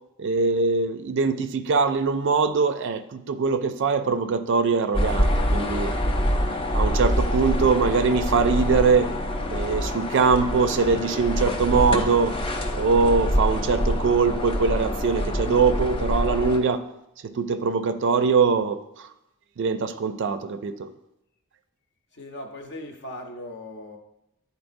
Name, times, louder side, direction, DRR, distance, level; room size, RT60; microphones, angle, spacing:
voice 1, 0.2-5.9 6.7-9.1 9.5-12.3 12.8-16.8 17.2-19.1 19.6-20.9, right 5 dB, 55° right, 10 dB, 0.4 m, -22 dB
sound 1, 4.9-16.6, equal, 25° left, 0.5 m, -25 dB
voice 2, 22.1-24.0, left 1 dB, 50° left, 4 dB, 0.8 m, -38 dB
10.0 x 4.1 x 2.6 m, 0.86 s
head